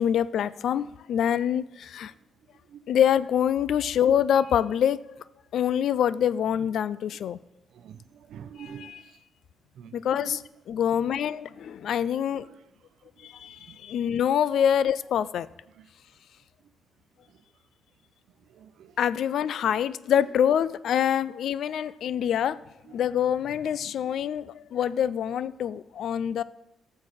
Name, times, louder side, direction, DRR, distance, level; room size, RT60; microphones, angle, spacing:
voice 1, 0.0-2.1 2.9-5.0 5.5-7.4 8.6-9.0 9.9-12.5 13.2-15.5 19.0-22.6 22.9-26.4, left 9 dB, 65° left, 0.3 m, -25 dB
voice 2, 7.7-9.1 9.7-10.4 12.4-12.5 13.7-13.8 15.7-15.9 18.5-18.9, right 8 dB, 70° right, 0.7 m, -45 dB
14.5 x 6.6 x 4.2 m
cardioid pair, 150°, 0 cm